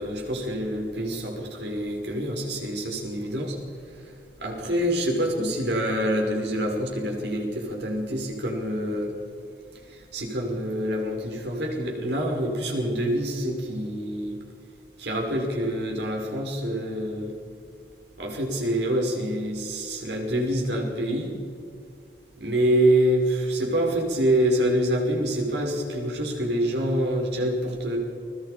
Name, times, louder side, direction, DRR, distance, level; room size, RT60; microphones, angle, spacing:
voice 1, 0.0-3.6 3.9-9.2 9.9-14.4 15.0-17.3 18.2-21.4 22.4-28.0, right 1 dB, 85° right, 1 dB, 5.6 m, -26 dB
30.0 x 22.0 x 5.2 m, 2.4 s
head